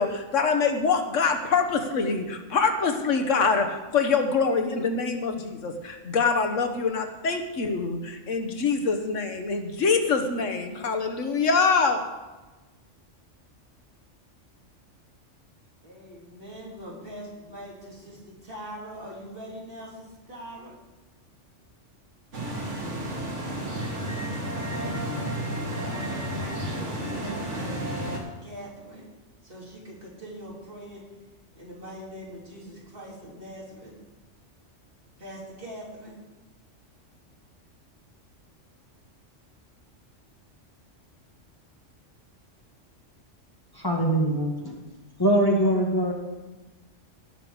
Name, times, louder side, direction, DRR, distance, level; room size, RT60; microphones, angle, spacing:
voice 1, 0.0-12.0, left 5 dB, 85° left, 5 dB, 1.5 m, -25 dB
voice 2, 15.8-20.8 25.8-29.0 29.4-31.0 31.5-33.9 35.2-36.1, equal, 50° right, -5 dB, 3.5 m, -42 dB
sound 1, 22.3-28.2, right 1 dB, 75° right, 2.4 m, -31 dB
voice 3, 43.7-44.8 45.2-46.1, right 1 dB, 20° left, -1 dB, 1.8 m, -22 dB
17.5 x 6.4 x 5.1 m, 1.1 s
omnidirectional pair, 1.3 m